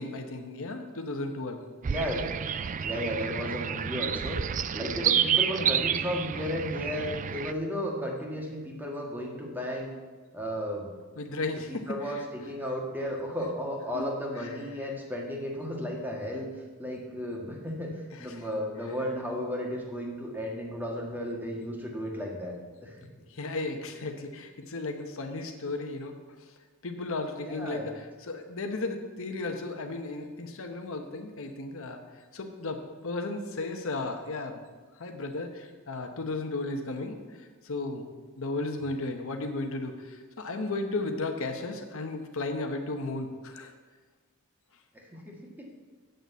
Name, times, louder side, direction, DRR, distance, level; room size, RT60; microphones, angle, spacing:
voice 1, 0.0-1.6 11.2-12.2 13.9-14.0 14.4-14.9 18.1-18.4 23.3-26.2 26.8-32.0 32.3-34.6 35.0-38.1 38.4-43.7, left 2 dB, 65° left, 5 dB, 1.0 m, -35 dB
sound 1, 1.8-7.5, right 8 dB, 35° right, 0.4 m, -29 dB
voice 2, 1.9-2.3 2.8-9.9 10.3-10.9 11.7-16.5 16.8-23.0 27.4-27.9 44.9-45.7, equal, 10° right, -1 dB, 1.7 m, -34 dB
7.9 x 6.7 x 8.1 m, 1.4 s
head